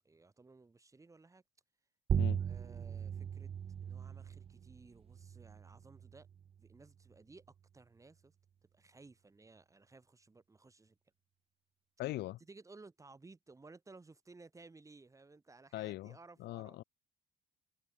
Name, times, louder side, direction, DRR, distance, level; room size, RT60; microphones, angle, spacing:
voice 1, 0.0-1.4 2.2-3.5 3.8-6.3 6.6-8.3 8.6-11.0 12.4-16.8, right 3 dB, 20° right, 6.3 m, -58 dB
sound 1, 2.1-7.2, right 8 dB, 35° right, 0.6 m, -39 dB
voice 2, 12.0-12.4 15.7-16.1 16.4-16.8, left 16 dB, 80° left, 2.8 m, -40 dB
cardioid pair, 110°, 17 cm